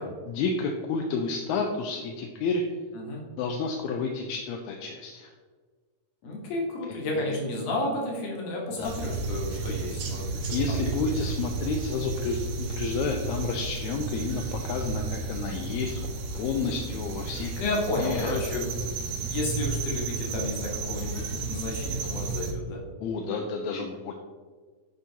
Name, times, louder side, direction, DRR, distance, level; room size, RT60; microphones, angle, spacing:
voice 1, 0.3-2.6 3.4-5.3 7.2-7.3 8.8-8.9 10.5-16.1 16.3-17.5 18.0-18.4 23.0-24.1, left 4 dB, 80° left, 2 dB, 1.9 m, -30 dB
voice 2, 6.2-10.8 11.0-11.3 17.6-22.8, left 2 dB, 65° left, -2 dB, 2.4 m, -32 dB
sound 1, 8.8-22.5, right 4 dB, 75° right, 2.1 m, -33 dB
10.5 x 3.8 x 2.8 m, 1.5 s
omnidirectional pair, 3.3 m